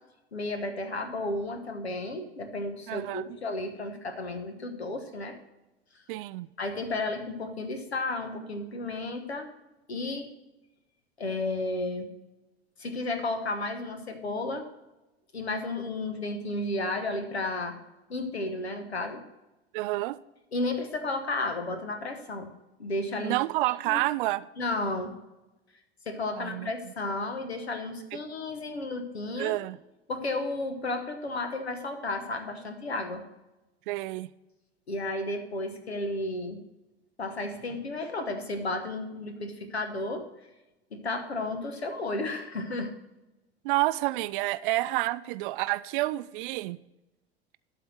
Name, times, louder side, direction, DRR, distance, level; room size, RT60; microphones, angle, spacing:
voice 1, 0.3-5.4 6.6-9.5 9.9-10.3 11.2-12.1 12.8-14.7 15.3-17.8 18.1-19.2 20.5-22.5 22.8-23.3 23.8-24.0 24.6-25.2 26.1-29.5 30.1-33.2 34.9-36.6 37.2-40.3 40.9-42.9, left 2 dB, 85° left, 1.2 m, -33 dB
voice 2, 2.9-3.2 6.1-6.5 19.7-20.2 23.2-24.5 26.3-26.7 29.4-29.8 33.9-34.3 43.6-46.8, right 18 dB, 55° right, 0.5 m, -29 dB
12.0 x 4.2 x 6.4 m
figure-of-eight pair, 75°, 31 cm